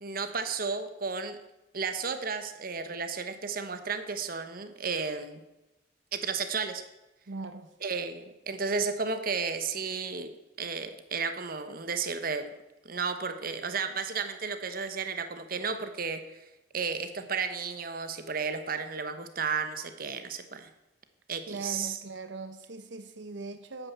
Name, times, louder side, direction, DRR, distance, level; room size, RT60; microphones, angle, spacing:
voice 1, 0.0-1.4 1.7-5.4 6.1-6.8 7.8-10.3 10.6-12.5 12.8-16.2 16.7-20.7 21.3-21.9, right 5 dB, 55° right, 9 dB, 1.2 m, -33 dB
voice 2, 7.3-7.7 21.5-23.9, right 3 dB, 90° right, 9 dB, 1.0 m, -40 dB
10.5 x 9.1 x 7.2 m, 0.98 s
head